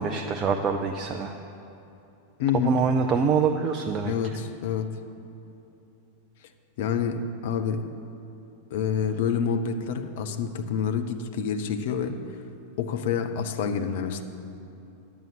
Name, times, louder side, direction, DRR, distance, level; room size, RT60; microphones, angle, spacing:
voice 1, 0.0-1.3 2.6-4.1, right 5 dB, 30° right, 4 dB, 0.5 m, -25 dB
voice 2, 2.4-2.8 4.1-5.0 6.8-7.9 8.7-12.2 12.8-14.2, left 7 dB, 55° left, 8 dB, 0.7 m, -27 dB
10.5 x 6.9 x 6.8 m, 2.8 s
figure-of-eight pair, 90°, 0 cm